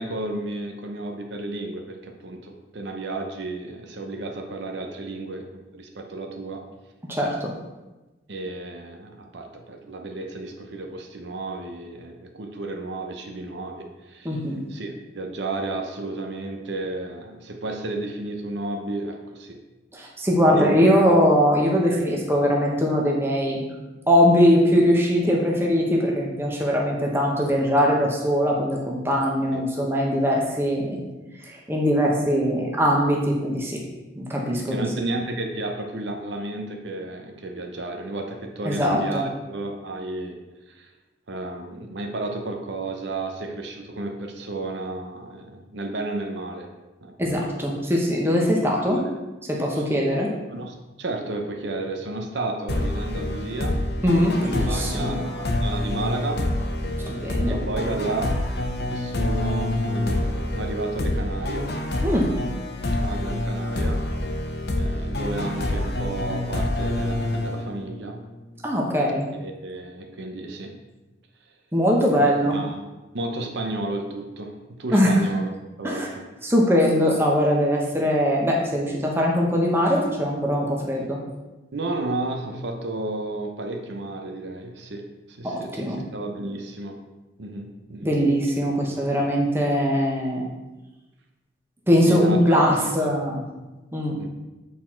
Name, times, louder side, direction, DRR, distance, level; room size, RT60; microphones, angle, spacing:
voice 1, 0.0-6.6 8.3-14.4 14.7-19.6 20.5-20.9 29.5-29.6 34.7-40.4 40.7-40.9 41.3-46.7 47.0-47.4 48.8-49.2 49.8-49.9 50.5-53.8 54.4-56.5 57.4-58.4 58.9-61.7 63.0-64.1 64.8-68.2 69.3-70.8 72.2-72.9 73.1-75.5 75.8-76.3 81.7-87.0 87.4-88.2 92.0-92.8 94.2-94.3, right 2 dB, 70° right, 3 dB, 0.8 m, -32 dB
voice 2, 7.1-7.5 14.2-14.6 19.9-23.6 24.1-31.0 31.4-33.8 34.2-34.8 38.6-39.2 47.2-49.0 49.5-50.3 54.0-55.2 57.1-57.6 62.0-62.3 68.6-69.2 71.7-72.6 74.9-75.2 75.8-76.1 76.4-81.2 85.4-86.0 88.0-90.5 91.9-93.4 93.9-94.2, equal, 10° right, -2 dB, 1.0 m, -21 dB
sound 1, 52.7-68.1, left 1 dB, 60° left, 0.8 m, -27 dB
8.2 x 4.3 x 4.4 m, 1.1 s
head